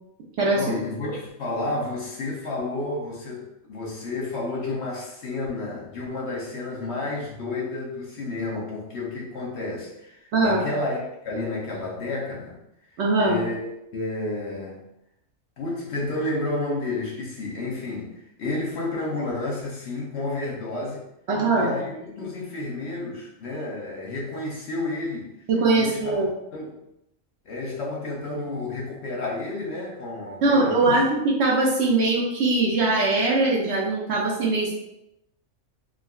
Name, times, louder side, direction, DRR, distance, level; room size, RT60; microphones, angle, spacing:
voice 1, 0.5-12.6 12.9-14.9 15.6-21.0 21.5-25.3 25.7-26.2 26.5-26.8 27.5-31.0, left 2 dB, 65° left, -3 dB, 0.8 m, -31 dB
voice 2, 10.3-10.6 13.0-13.5 21.3-21.8 25.5-26.3 30.4-34.8, right 2 dB, 65° right, -3 dB, 0.8 m, -21 dB
3.5 x 2.2 x 2.3 m, 0.85 s
omnidirectional pair, 1.4 m